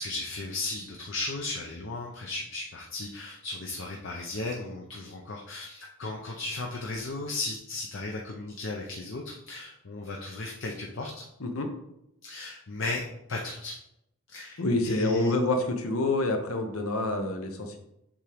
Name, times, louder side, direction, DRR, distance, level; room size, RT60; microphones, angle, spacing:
voice 1, 0.0-11.2 12.2-13.0 13.3-13.7 14.3-15.3, left 2 dB, 60° left, 0 dB, 0.6 m, -35 dB
voice 2, 14.6-17.8, left 2 dB, 80° left, 5 dB, 0.9 m, -27 dB
7.2 x 3.7 x 3.5 m, 0.82 s
head